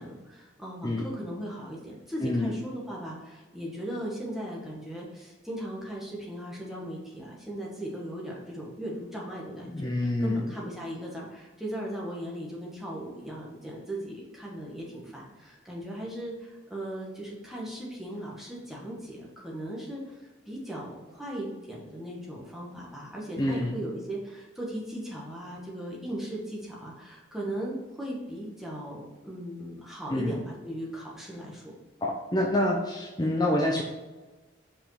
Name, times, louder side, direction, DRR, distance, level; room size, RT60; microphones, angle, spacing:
voice 1, 0.0-31.6, right 1 dB, ahead, -4 dB, 1.6 m, -38 dB
voice 2, 2.2-2.5 9.6-10.4 23.4-23.8 30.1-30.3 32.0-33.8, left 1 dB, 20° left, -1 dB, 0.7 m, -27 dB
5.6 x 5.3 x 4.9 m, 1.2 s
head